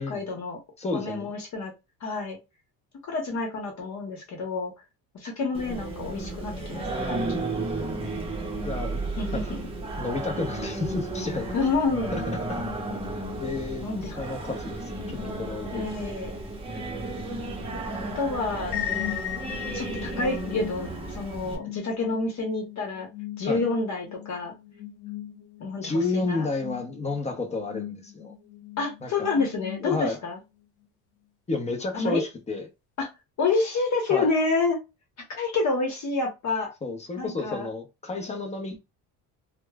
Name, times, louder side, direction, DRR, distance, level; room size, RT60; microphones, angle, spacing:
voice 1, 0.1-0.6 0.9-1.7 2.0-2.4 3.0-4.7 5.2-7.5 9.2-9.7 11.5-12.2 13.8-14.2 15.7-16.4 18.2-18.8 19.7-23.1 23.4-24.5 25.6-26.5 28.8-30.4 31.9-32.2 33.0-33.1 33.4-34.8 35.3-36.7 37.2-37.7, left 3 dB, 45° left, 1.0 m, -28 dB
voice 2, 0.8-1.3 8.6-9.0 9.3-9.6 10.0-11.5 12.1-12.2 12.5-12.6 13.4-15.9 23.4-23.6 25.8-28.3 29.0-29.3 29.8-30.2 31.5-32.7 34.1-34.3 36.8-38.8, left 3 dB, 20° left, 0.7 m, -31 dB
Singing, 5.5-21.6, right 2 dB, 15° right, 0.9 m, -33 dB
sound 1, 18.7-30.4, left 12 dB, 85° left, 0.7 m, -38 dB
3.0 x 2.2 x 2.3 m
cardioid pair, 105°, 37 cm